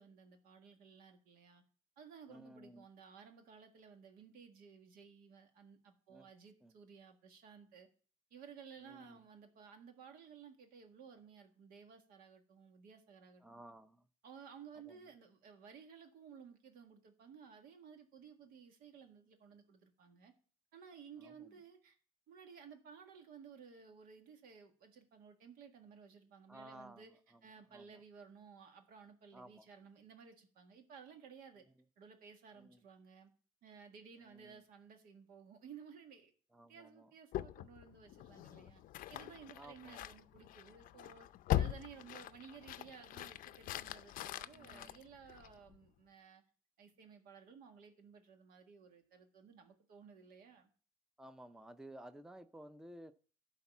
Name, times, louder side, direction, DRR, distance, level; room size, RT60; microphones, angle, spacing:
voice 1, 0.0-1.6 2.0-7.9 8.3-13.4 14.2-20.3 20.7-22.0 22.3-27.1 27.4-31.6 32.0-33.3 33.6-36.3 36.7-38.8 39.1-41.3 41.5-46.4 46.8-50.7, right 6 dB, 80° right, 1.7 m, -56 dB
voice 2, 2.3-2.8 6.1-6.3 6.6-6.7 8.8-9.2 13.4-14.0 14.9-15.0 21.2-21.5 26.5-27.1 27.3-27.4 27.7-28.0 29.3-29.7 32.6-32.8 34.2-34.6 36.5-37.1 39.6-40.1 44.5-45.0 51.2-53.1, right 1 dB, 5° right, 0.5 m, -55 dB
sound 1, 37.3-45.8, left 13 dB, 70° left, 0.5 m, -42 dB
11.5 x 4.2 x 7.1 m
cardioid pair, 105°, 15 cm